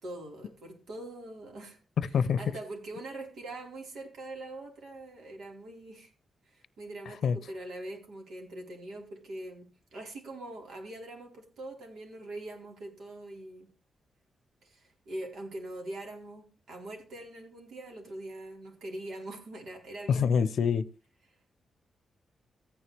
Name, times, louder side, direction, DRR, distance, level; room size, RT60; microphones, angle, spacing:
voice 1, 0.0-1.8 2.4-6.1 6.5-13.7 14.6-20.5, right 1 dB, 75° right, 4.3 m, -43 dB
voice 2, 2.0-2.5 7.2-7.4 20.1-20.9, left 6 dB, 70° left, 0.6 m, -26 dB
14.5 x 9.8 x 3.3 m
wide cardioid pair, 125°, 0 cm